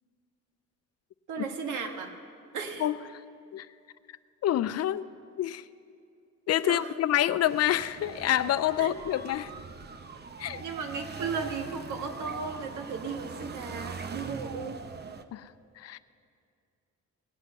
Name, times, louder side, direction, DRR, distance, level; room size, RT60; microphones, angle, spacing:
voice 1, 1.3-2.2 2.5-2.9 6.6-6.9 8.8-9.0 10.6-14.8, right 5 dB, 75° right, 4 dB, 1.4 m, -35 dB
voice 2, 4.4-5.0 5.4-5.6 6.5-9.5 10.4-10.6 15.3-15.5 15.8-16.0, left 12 dB, 55° left, 15 dB, 0.4 m, -27 dB
sound 1, 7.5-15.2, right 5 dB, 35° right, 0.7 m, -42 dB
19.5 x 8.1 x 5.4 m, 2.4 s
cardioid pair, 90°, 30 cm